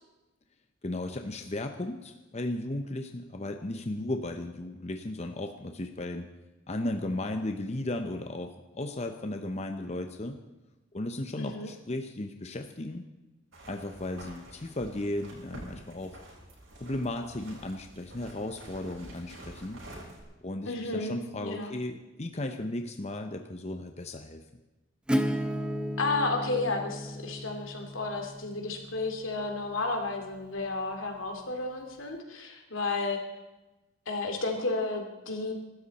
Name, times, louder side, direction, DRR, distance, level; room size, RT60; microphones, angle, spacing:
voice 1, 0.8-6.3 6.7-10.4 10.9-13.0 13.6-16.2 16.8-19.8 20.4-24.4, left 1 dB, 35° left, 6 dB, 0.8 m, -35 dB
voice 2, 11.4-11.7 20.7-21.7 26.0-33.2 34.1-35.5, left 3 dB, 80° left, 3 dB, 2.6 m, -32 dB
sound 1, 13.5-20.2, right 1 dB, 80° right, 7.0 m, -48 dB
Acoustic guitar / Strum, 25.1-30.6, equal, 5° right, 0.7 m, -34 dB
24.5 x 13.0 x 4.2 m, 1.1 s
head